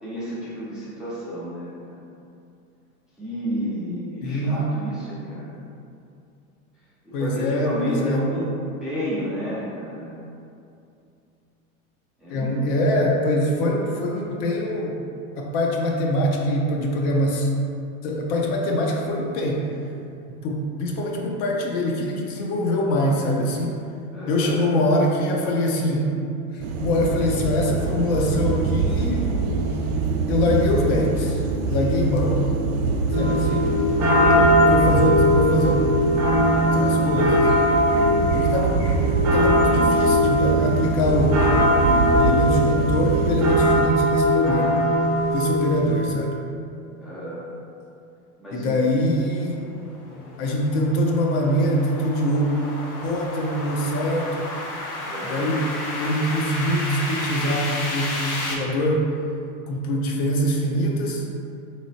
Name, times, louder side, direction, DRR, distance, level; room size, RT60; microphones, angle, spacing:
voice 1, 0.0-2.0 3.2-5.5 7.0-8.5 8.8-10.2 12.2-12.7 24.1-24.8 34.0-35.1 37.9-38.4 47.0-47.4 48.4-48.9 55.0-55.5, equal, ahead, -10 dB, 0.4 m, -31 dB
voice 2, 4.2-4.7 7.1-8.2 12.3-15.0 15.4-17.5 18.0-19.7 20.3-23.8 24.3-26.1 26.5-29.3 30.3-32.4 33.1-33.8 34.7-35.8 36.6-37.4 38.3-38.9 39.3-44.7 45.3-46.4 48.5-49.5 50.4-52.5 53.0-54.5 55.2-55.6 56.0-59.1 59.7-61.2, equal, 50° left, 0 dB, 0.6 m, -23 dB
sound 1, 26.6-43.9, right 4 dB, 85° right, 0.6 m, -25 dB
sound 2, 33.1-46.1, left 1 dB, 35° right, 1.0 m, -20 dB
sound 3, 49.5-58.6, left 2 dB, 80° left, 0.9 m, -32 dB
3.3 x 3.1 x 2.7 m, 2.6 s
supercardioid pair, 120°, 44 cm